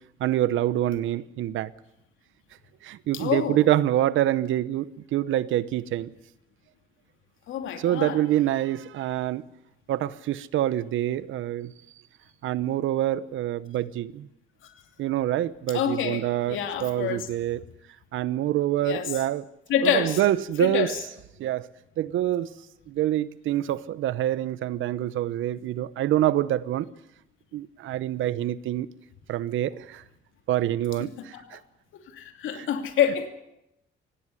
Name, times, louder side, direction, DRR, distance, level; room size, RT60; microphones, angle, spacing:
voice 1, 0.2-1.7 2.8-6.1 7.8-9.4 9.9-11.7 12.4-14.3 15.0-17.6 18.1-19.4 19.8-20.9 21.4-21.7 22.0-22.5 22.9-26.9 27.5-28.9 29.3-30.0 30.5-31.6 32.5-32.7, right 13 dB, 80° right, 17 dB, 0.9 m, -26 dB
voice 2, 3.1-3.6 7.5-8.2 14.6-14.7 15.7-17.3 18.8-19.1 19.7-20.2 20.6-21.0 31.2-31.6 32.1-33.3, left 9 dB, 80° left, 6 dB, 2.7 m, -27 dB
18.5 x 17.0 x 9.9 m, 0.83 s
cardioid pair, 90°, 20 cm